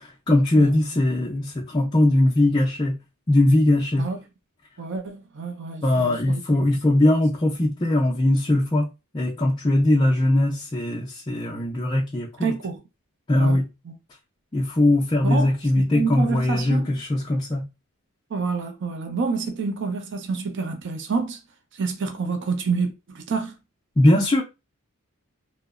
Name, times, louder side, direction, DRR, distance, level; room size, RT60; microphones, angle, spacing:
voice 1, 0.0-3.0 3.3-4.1 5.8-8.9 9.1-12.5 13.3-13.7 14.5-17.7 24.0-24.4, left 1 dB, 20° left, 0.4 m, -20 dB
voice 2, 4.8-6.4 12.4-12.8 13.4-13.6 13.9-14.0 15.2-16.9 18.3-21.4 21.7-23.5, right 4 dB, 55° right, 0.5 m, -28 dB
2.8 x 2.0 x 2.3 m
head